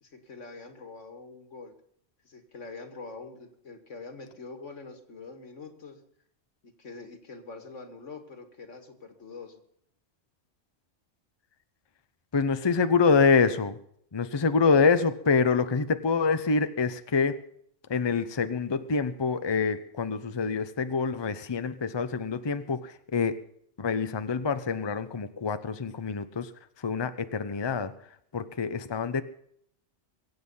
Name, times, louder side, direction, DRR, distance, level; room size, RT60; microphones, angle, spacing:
voice 1, 0.0-1.7 2.2-6.0 6.6-9.6, left 4 dB, 85° left, 7 dB, 2.3 m, -44 dB
voice 2, 12.3-13.8 14.1-17.4 17.9-23.4 23.8-26.5 26.8-27.9 28.3-29.2, left 5 dB, 25° left, 11 dB, 0.7 m, -26 dB
23.0 x 8.1 x 5.5 m, 0.68 s
omnidirectional pair, 1.2 m